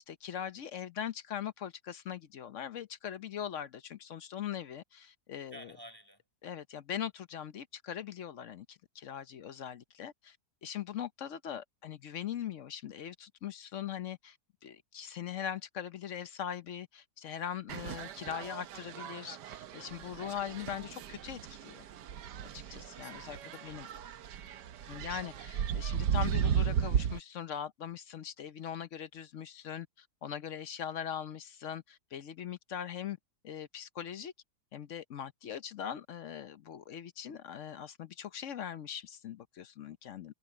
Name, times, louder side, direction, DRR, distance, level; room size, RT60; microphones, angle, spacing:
voice 1, 0.0-5.7 6.4-10.4 10.6-14.4 14.6-21.8 22.5-23.4 23.6-23.9 24.9-33.2 33.4-34.3 34.7-40.3, left 9 dB, 55° left, 0.9 m, -41 dB
voice 2, 5.5-6.2 22.9-24.6, equal, 15° right, 6.4 m, -54 dB
sound 1, 17.7-27.2, right 8 dB, 85° right, 1.5 m, -35 dB
omnidirectional pair, 1.8 m